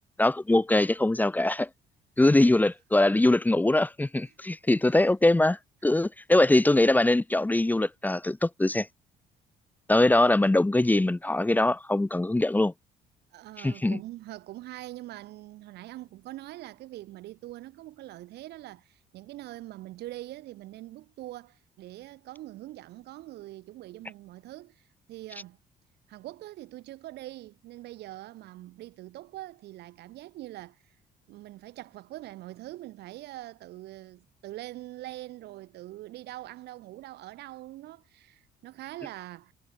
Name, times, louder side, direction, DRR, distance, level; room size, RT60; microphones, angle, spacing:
voice 1, 0.2-1.7 2.2-8.9 9.9-12.7 13.6-14.0, left 2 dB, 10° left, 1.4 m, -22 dB
voice 2, 13.3-24.8 25.1-25.6 26.1-30.9 31.3-39.5, right 16 dB, 80° right, 6.6 m, -43 dB
cardioid pair, 110°, 17 cm